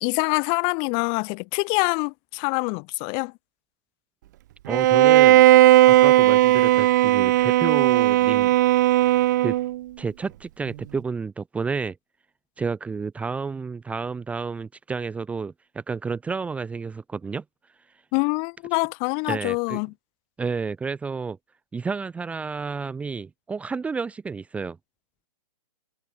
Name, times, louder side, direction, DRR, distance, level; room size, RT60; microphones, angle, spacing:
voice 1, 0.0-3.3 18.1-19.9, left 37 dB, 25° left, 1.9 m, -25 dB
voice 2, 4.7-5.5 5.9-8.6 9.4-9.6 10.0-12.0 12.6-17.4 19.3-19.8 20.4-21.4 21.7-24.8, right 5 dB, 5° right, 1.3 m, -31 dB
Bowed string instrument, 4.7-9.8, right 15 dB, 30° right, 0.4 m, -16 dB
hypercardioid pair, 160°, 20 cm